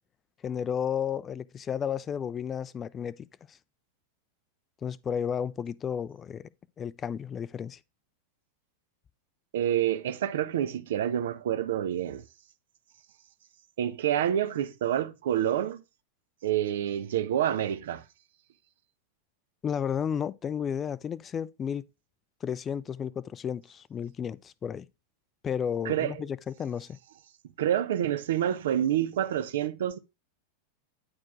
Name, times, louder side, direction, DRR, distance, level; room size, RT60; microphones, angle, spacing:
voice 1, 0.4-3.2 4.8-6.5 6.8-7.8 19.6-21.8 22.4-24.9 25.4-27.0, left 8 dB, 25° left, 0.4 m, -32 dB
voice 2, 9.5-12.2 13.8-15.8 16.4-18.0 25.8-26.3 27.6-30.0, right 10 dB, 60° right, 0.8 m, -28 dB
9.6 x 4.4 x 4.7 m
figure-of-eight pair, 90°, 0 cm